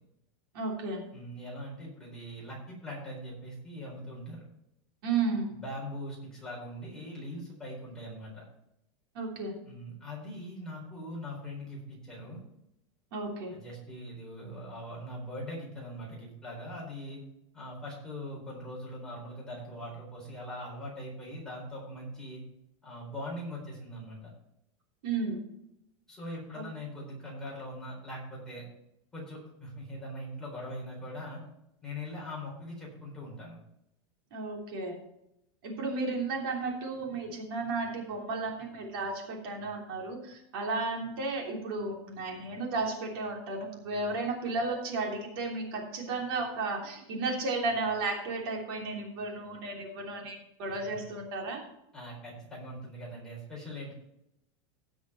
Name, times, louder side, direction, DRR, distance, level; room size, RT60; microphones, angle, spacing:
voice 1, 0.5-1.0 5.0-5.5 9.1-9.6 13.1-13.5 25.0-25.4 34.3-34.9 35.6-51.6, right 3 dB, 55° right, 0 dB, 3.2 m, -33 dB
voice 2, 1.1-4.4 5.5-8.4 9.6-12.4 13.5-17.2 17.5-22.4 22.8-24.2 26.1-28.6 29.1-31.4 31.8-33.6 50.7-50.8 51.9-53.9, equal, 5° left, -5 dB, 4.2 m, -41 dB
16.5 x 6.2 x 4.4 m, 0.81 s
supercardioid pair, 175°, 15 cm